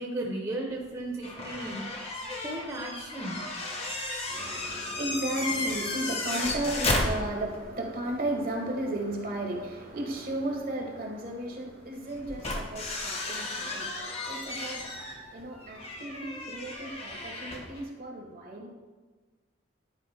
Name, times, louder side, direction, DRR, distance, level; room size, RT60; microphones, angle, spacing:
voice 1, 0.0-2.2 2.4-3.4, right 1 dB, 15° right, -2 dB, 0.8 m, -35 dB
sound 1, 1.2-7.7 8.0-8.1 10.2-10.3 12.1-17.8, left 2 dB, 30° left, 0.9 m, -34 dB
voice 2, 4.3-18.7, right 1 dB, 45° right, 1 dB, 1.1 m, -34 dB
10.5 x 4.7 x 3.4 m, 1.4 s
head